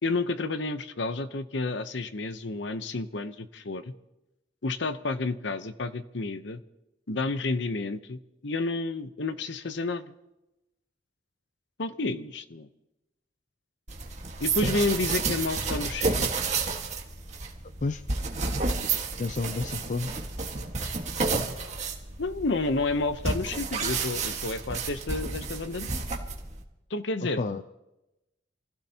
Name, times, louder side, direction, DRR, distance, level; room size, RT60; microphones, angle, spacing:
voice 1, 0.0-3.9 4.6-6.6 7.1-10.0 11.8-12.7 14.4-16.3 22.2-26.0 26.9-27.4, left 3 dB, 65° left, 11 dB, 0.9 m, -30 dB
sound 1, 13.9-26.6, right 4 dB, 35° right, 1.7 m, -31 dB
voice 2, 19.2-20.1 27.4-27.6, left 3 dB, 40° left, 10 dB, 0.5 m, -30 dB
27.5 x 16.0 x 2.9 m, 0.95 s
head